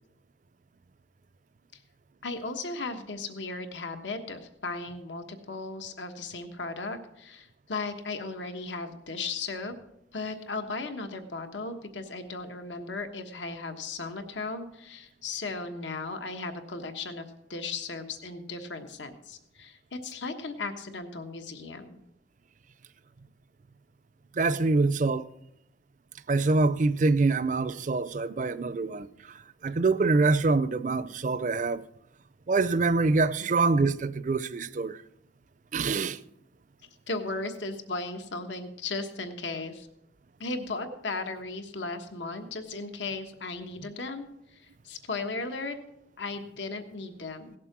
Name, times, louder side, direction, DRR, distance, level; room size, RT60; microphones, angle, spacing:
voice 1, 2.2-9.7 10.1-22.0 33.4-33.5 37.1-39.9 40.4-44.3 44.5-45.8 46.2-47.5, left 3 dB, 85° left, 1.3 m, -36 dB
voice 2, 24.4-25.2 26.3-29.1 29.6-31.8 32.5-35.0 35.7-36.2, right 3 dB, 45° right, 0.5 m, -25 dB
17.5 x 7.5 x 6.0 m
head